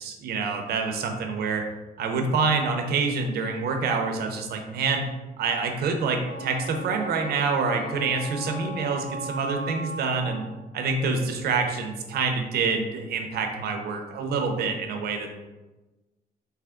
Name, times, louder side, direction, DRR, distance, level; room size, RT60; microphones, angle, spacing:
voice 1, 0.0-1.6 2.0-5.1 5.4-10.4 10.7-15.3, right 4 dB, 80° right, 4 dB, 0.6 m, -26 dB
Wind instrument woodwind instrument, 6.2-10.5, right 1 dB, 85° left, 1.2 m, -37 dB
3.4 x 2.8 x 3.6 m, 1.1 s
cardioid pair, 165°, 16 cm